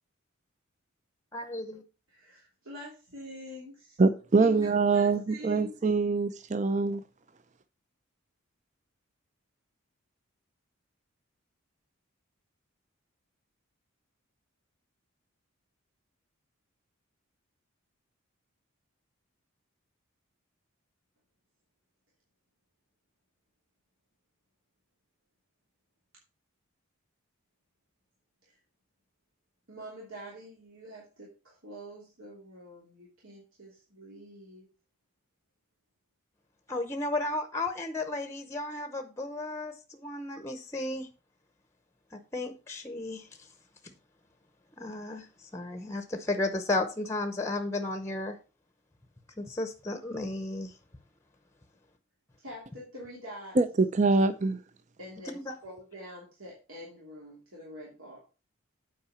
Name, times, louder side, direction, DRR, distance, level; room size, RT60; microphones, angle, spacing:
voice 1, 1.3-1.8 36.7-41.1 42.1-43.3 44.8-45.3 45.5-48.4 49.4-50.7 55.5-55.6, left 2 dB, 10° left, 0.8 m, -33 dB
voice 2, 2.1-4.0 4.4-5.7 28.5-28.6 29.7-34.7 52.4-53.6 55.0-58.2, equal, 75° right, 2.9 m, -46 dB
voice 3, 4.0-7.0 53.6-54.6, right 3 dB, 35° right, 0.5 m, -24 dB
8.6 x 4.8 x 5.7 m
head